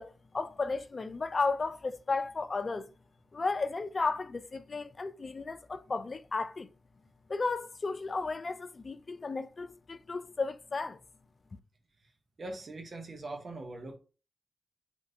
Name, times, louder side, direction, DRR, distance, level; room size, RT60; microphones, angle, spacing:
voice 1, 0.0-2.9 3.3-6.7 7.3-11.0, left 3 dB, 50° left, 0.3 m, -34 dB
voice 2, 12.4-14.0, right 2 dB, 60° right, 0.8 m, -41 dB
2.9 x 2.6 x 2.7 m
supercardioid pair, 45°, 0 cm